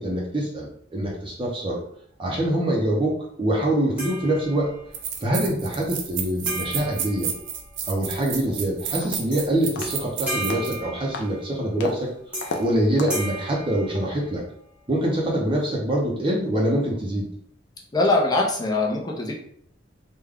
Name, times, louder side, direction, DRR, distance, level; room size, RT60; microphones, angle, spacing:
voice 1, 0.0-1.8 2.2-4.7 5.2-7.3 7.9-12.1 12.6-14.4 14.9-17.3, right 1 dB, 30° right, -3 dB, 0.6 m, -24 dB
sound 1, 4.0-5.0 6.5-8.0 9.3-9.5 9.8-11.6 12.3-12.7 13.1-14.5, equal, 5° right, 1.0 m, -35 dB
sound 2, 4.4-4.5 4.9-10.8, right 7 dB, 70° right, 0.5 m, -31 dB
sound 3, 8.5-8.6 9.0-9.4 9.8-10.1 10.5-10.7 11.1-11.4 11.8-12.0 12.4-12.7 13.0-13.3, left 3 dB, 65° left, 0.5 m, -33 dB
voice 2, 17.9-19.3, left 2 dB, 20° left, -1 dB, 0.6 m, -22 dB
3.4 x 2.2 x 3.4 m, 0.65 s
head